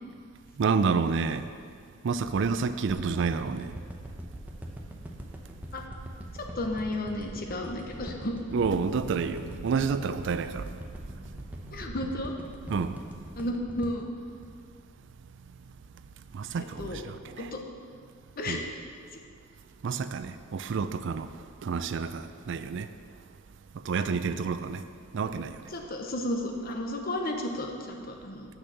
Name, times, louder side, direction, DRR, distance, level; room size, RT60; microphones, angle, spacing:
voice 1, 0.6-1.5 2.0-3.8 8.5-10.8 11.1-11.2 11.7-11.8 12.7-13.2 16.3-17.5 18.5-18.7 19.8-22.9 23.7-24.8 25.1-25.6, right 5 dB, 65° right, 0.4 m, -29 dB
sound 1, 2.9-15.2 15.6-15.7, equal, 10° right, 0.7 m, -42 dB
voice 2, 6.4-8.4 11.7-12.3 13.4-14.1 16.6-17.0 17.4-17.6 18.4-18.7 23.9-24.1 25.7-28.6, left 1 dB, 50° left, 0.9 m, -33 dB
6.3 x 6.1 x 6.9 m
head